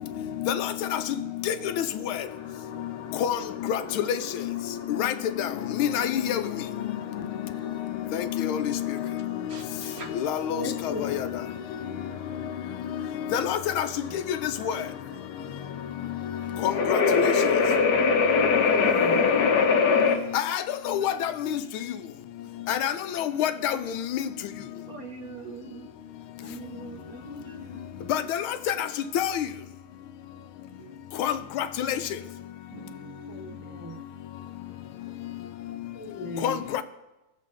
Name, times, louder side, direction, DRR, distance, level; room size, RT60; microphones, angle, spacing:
voice 1, 0.4-1.0 1.5-2.2 3.2-3.4 3.7-4.6 5.0-5.5 5.8-6.4 7.1-7.2 8.1-8.9 10.1-11.3 13.3-13.9 14.1-14.4 14.6-14.8 16.6-17.2 20.3-21.3 22.7-24.2 28.1-28.9 29.1-29.5 31.2-32.0 36.4-36.8, left 9 dB, 75° left, 1.4 m, -27 dB
sound 1, 2.2-20.2, left 5 dB, 60° left, 1.2 m, -25 dB
voice 2, 9.5-10.1 21.5-21.6 24.9-25.9 26.4-28.2 30.8-30.9 32.7-33.8, right 4 dB, 60° right, 1.0 m, -43 dB
voice 3, 10.5-11.1 13.7-14.2 18.6-19.3 26.9-27.2 33.3-34.0 35.9-36.6, left 1 dB, 10° right, 1.0 m, -38 dB
17.5 x 7.4 x 2.5 m
omnidirectional pair, 2.4 m